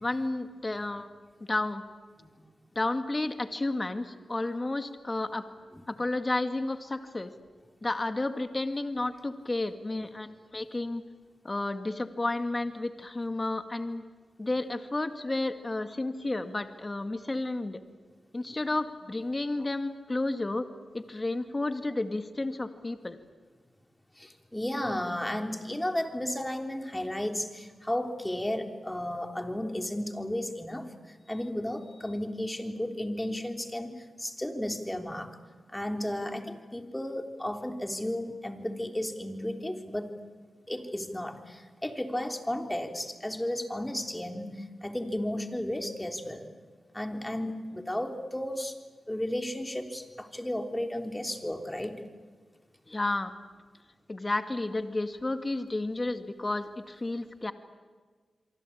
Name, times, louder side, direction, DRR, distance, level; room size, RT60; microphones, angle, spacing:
voice 1, 0.0-1.1 1.5-1.8 2.8-5.4 5.9-7.3 7.8-11.0 11.4-14.0 14.4-17.8 18.3-20.7 20.9-23.2 52.9-53.3 54.1-57.5, left 2 dB, 35° left, 8 dB, 2.1 m, -31 dB
voice 2, 24.2-35.4 35.7-40.1 40.7-46.5 46.9-48.8 49.1-52.0, left 1 dB, 15° left, 4 dB, 3.5 m, -34 dB
27.0 x 24.0 x 8.7 m, 1.5 s
cardioid pair, 45°, 0 cm